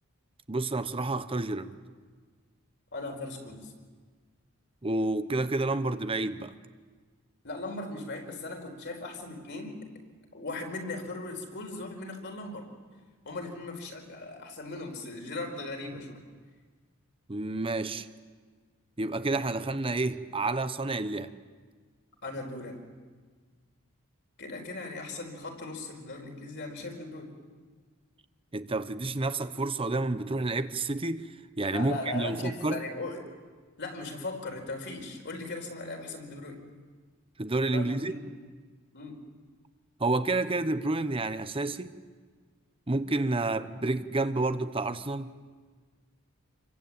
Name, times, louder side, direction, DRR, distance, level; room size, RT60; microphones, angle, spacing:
voice 1, 0.5-1.7 4.8-6.5 17.3-18.1 19.0-21.3 28.5-31.3 31.6-32.8 37.4-38.1 40.0-41.9 42.9-45.3, right 2 dB, 25° right, 12 dB, 1.0 m, -29 dB
voice 2, 2.9-3.7 7.4-9.8 10.3-12.7 13.2-16.1 22.2-22.8 24.4-27.3 31.7-33.2 33.8-36.6 37.7-38.2 38.9-39.2, left 2 dB, 55° left, 2 dB, 4.7 m, -38 dB
28.0 x 23.5 x 8.8 m, 1.5 s
head